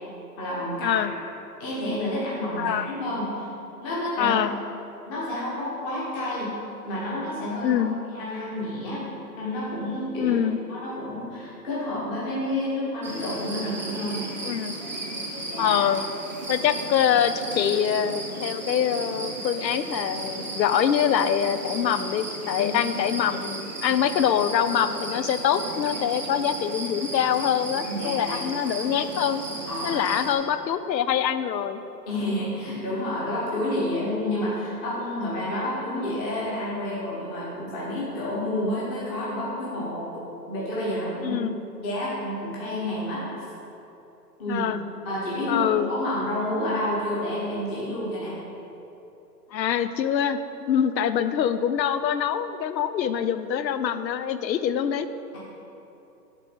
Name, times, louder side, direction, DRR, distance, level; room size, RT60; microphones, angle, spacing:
voice 1, 0.4-1.0 1.6-3.5 3.8-4.4 5.1-6.5 6.9-7.8 8.1-9.0 9.4-10.4 10.7-14.3 15.4-15.8 22.6-22.7 27.9-28.4 29.7-30.1 32.1-40.1 40.5-41.4 41.8-43.2 44.4-44.7 45.0-48.3, left 1 dB, 15° left, -8 dB, 0.9 m, -29 dB
voice 2, 4.2-4.5 7.6-8.0 10.2-10.6 14.4-14.8 15.6-16.0 16.5-29.4 29.8-31.8 41.2-41.5 44.5-44.8 45.5-45.9 49.5-50.4 50.7-55.1, left 9 dB, 85° left, 12 dB, 0.6 m, -24 dB
sound 1, 13.0-30.4, right 2 dB, 30° right, 0.4 m, -34 dB
7.4 x 3.4 x 5.2 m, 2.9 s
hypercardioid pair, 145°, 50 cm